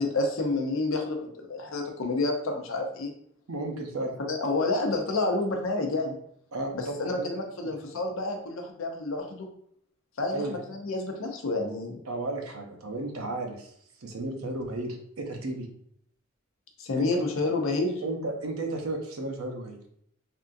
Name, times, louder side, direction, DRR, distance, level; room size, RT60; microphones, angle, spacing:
voice 1, 0.0-3.1 4.2-6.2 6.7-9.5 10.2-12.0 16.8-18.0, left 2 dB, 70° left, 3 dB, 0.6 m, -29 dB
voice 2, 3.5-4.1 6.5-7.3 10.3-10.6 12.1-13.7 14.0-15.7 17.0-17.2 18.0-19.8, right 2 dB, 85° right, 3 dB, 0.6 m, -33 dB
3.5 x 2.6 x 2.5 m, 0.66 s
head